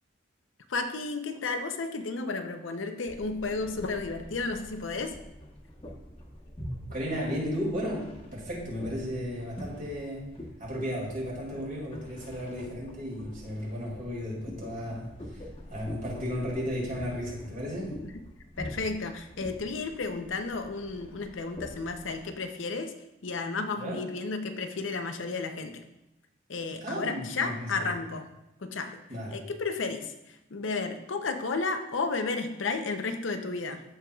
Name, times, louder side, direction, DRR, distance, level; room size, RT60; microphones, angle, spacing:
voice 1, 0.7-5.1 18.0-18.1 18.6-22.9 23.2-25.8 26.5-28.3 28.6-29.0 29.3-33.8, left 4 dB, 85° left, 7 dB, 0.7 m, -33 dB
sound 1, 3.1-22.3, equal, 30° left, 1.2 m, -45 dB
voice 2, 6.9-10.3 10.6-15.1 15.7-17.9 23.8-24.0 26.8-27.7 29.1-29.4, equal, 45° right, -4 dB, 2.5 m, -34 dB
14.0 x 4.6 x 2.4 m, 0.90 s
head